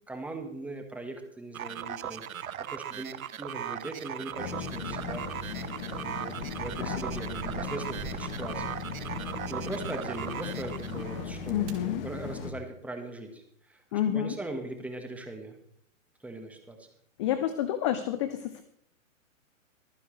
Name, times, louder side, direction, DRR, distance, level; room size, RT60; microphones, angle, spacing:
voice 1, 0.1-5.3 5.5-5.7 5.9-8.8 9.5-15.6 16.2-16.9, right 2 dB, 5° right, 4 dB, 1.5 m, -40 dB
sound 1, 1.5-11.3, right 9 dB, 80° right, 1.0 m, -38 dB
sound 2, 4.3-4.4 4.8-9.3 9.7-10.2 11.1-11.7, right 6 dB, 35° right, 2.5 m, -46 dB
sound 3, 4.4-12.5, left 5 dB, 45° left, 1.5 m, -38 dB
voice 2, 11.5-12.0 13.9-14.3 17.2-18.6, left 11 dB, 20° left, 11 dB, 0.5 m, -29 dB
23.5 x 9.5 x 3.3 m, 0.69 s
hypercardioid pair, 145°, 41 cm